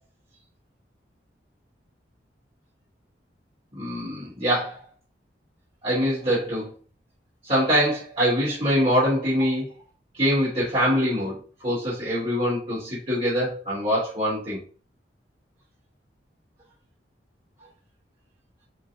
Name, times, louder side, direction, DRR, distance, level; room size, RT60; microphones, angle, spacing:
voice 1, 3.7-4.8 5.8-6.7 7.4-9.7 10.2-11.4 11.6-14.6, equal, 35° right, -9 dB, 3.2 m, -24 dB
7.7 x 4.7 x 2.6 m, 0.39 s
head